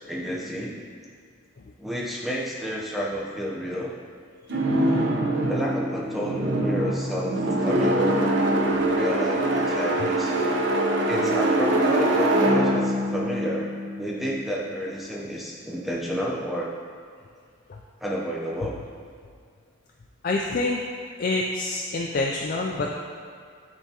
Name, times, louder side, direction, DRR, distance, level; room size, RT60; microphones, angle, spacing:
voice 1, 0.1-0.7 1.8-3.9 5.5-8.4 8.9-10.3 11.1-13.7 14.0-16.7 18.0-18.8, equal, ahead, -3 dB, 0.6 m, -30 dB
sound 1, 4.5-14.5, right 1 dB, 55° right, 0.6 m, -23 dB
voice 2, 20.2-20.8 21.2-23.0, left 2 dB, 45° left, -1 dB, 0.4 m, -26 dB
10.0 x 3.5 x 2.9 m, 2.2 s
head